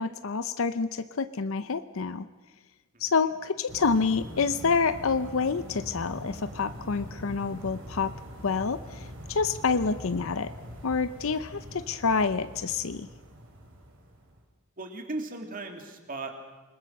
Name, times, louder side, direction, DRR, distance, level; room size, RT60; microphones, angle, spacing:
voice 1, 0.0-2.3 3.0-8.1 8.4-10.5 10.8-13.1, left 5 dB, 70° left, 12 dB, 0.7 m, -28 dB
sound 1, 3.7-14.4, equal, 65° right, 4.9 m, -43 dB
voice 2, 14.8-16.4, right 2 dB, 40° right, 4 dB, 2.9 m, -36 dB
27.5 x 20.5 x 6.6 m, 1.2 s
head